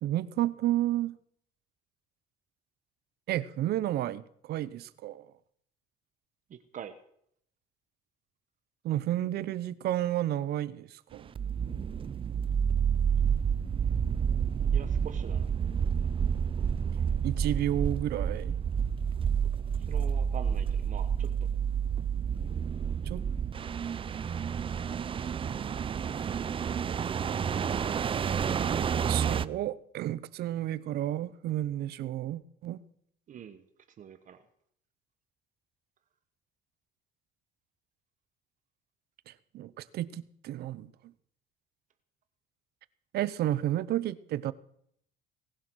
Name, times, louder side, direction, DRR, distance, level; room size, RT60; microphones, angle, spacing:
voice 1, 0.0-1.2 3.3-5.3 8.8-11.3 17.2-18.6 23.0-23.2 29.0-32.8 39.3-40.9 43.1-44.5, right 13 dB, 70° right, 0.8 m, -31 dB
voice 2, 6.5-7.0 14.7-15.5 19.8-21.3 33.3-33.6 34.0-34.4, right 8 dB, 50° right, 1.2 m, -44 dB
sound 1, 11.3-29.5, right 7 dB, 30° right, 0.5 m, -29 dB
19.0 x 11.5 x 6.3 m
cardioid pair, 110°, 17 cm